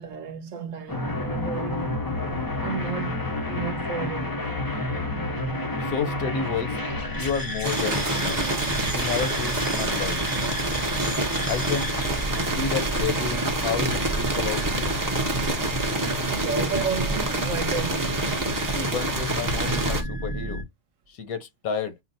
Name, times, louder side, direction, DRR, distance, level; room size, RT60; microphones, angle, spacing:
voice 1, 0.0-1.9 2.6-4.5 16.3-18.4, right 6 dB, 65° right, 1.0 m, -32 dB
sound 1, 0.9-20.6, left 1 dB, 35° left, 0.3 m, -31 dB
voice 2, 5.8-6.8 7.2-8.4 8.9-10.2 11.5-11.9 12.4-14.9 18.7-20.6 21.1-21.9, left 6 dB, 80° left, 1.4 m, -30 dB
sound 2, 7.6-20.0, right 2 dB, 20° right, 0.5 m, -27 dB
sound 3, 7.6-14.0, right 4 dB, 40° right, 1.1 m, -39 dB
4.4 x 2.1 x 3.9 m
omnidirectional pair, 1.5 m